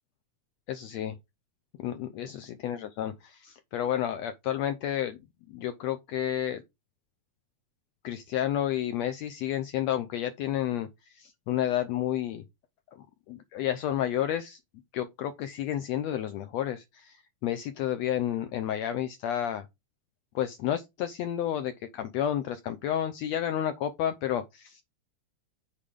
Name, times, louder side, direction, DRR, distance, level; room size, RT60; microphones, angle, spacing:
voice 1, 0.7-1.2 1.8-5.2 5.5-6.6 8.0-12.4 13.3-14.6 14.9-19.7 20.4-24.8, left 11 dB, 75° left, 1.7 m, -31 dB
8.6 x 4.9 x 3.7 m
omnidirectional pair, 3.4 m